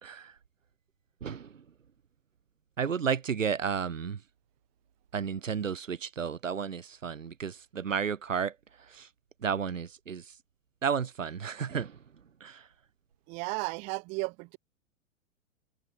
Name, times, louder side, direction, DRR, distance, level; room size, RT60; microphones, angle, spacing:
voice 1, 0.0-0.3 1.2-1.6 2.8-4.2 5.1-9.1 9.4-10.3 10.8-12.0 12.4-12.7, right 7 dB, 90° right, 0.6 m, -32 dB
voice 2, 13.3-14.6, right 30 dB, 20° right, 0.4 m, -34 dB
figure-of-eight pair, 95°, 38 cm